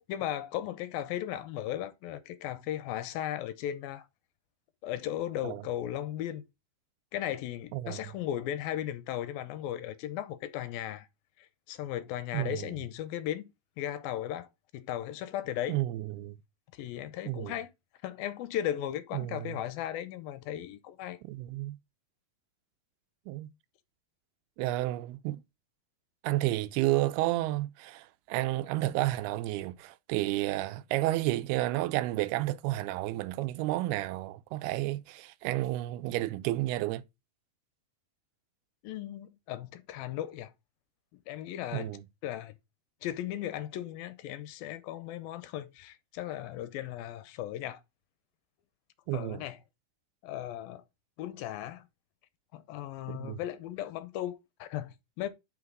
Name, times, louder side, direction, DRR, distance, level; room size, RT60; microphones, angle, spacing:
voice 1, 0.0-4.1 4.8-6.4 7.1-11.1 11.4-13.5 13.8-14.5 14.7-15.8 16.7-17.7 18.0-21.2 38.8-40.5 41.3-41.9 42.2-42.6 43.0-47.8 49.1-49.6 50.2-50.8 51.2-51.9 52.5-55.3, left 12 dB, 75° left, 2.5 m, -36 dB
voice 2, 7.7-8.1 12.3-12.7 15.7-16.4 17.3-17.6 19.1-19.6 21.3-21.8 23.3-23.5 24.6-25.4 26.2-37.0 41.7-42.1 49.1-49.4 53.1-53.4, right 16 dB, 85° right, 2.6 m, -31 dB
9.3 x 5.9 x 3.9 m
omnidirectional pair, 4.5 m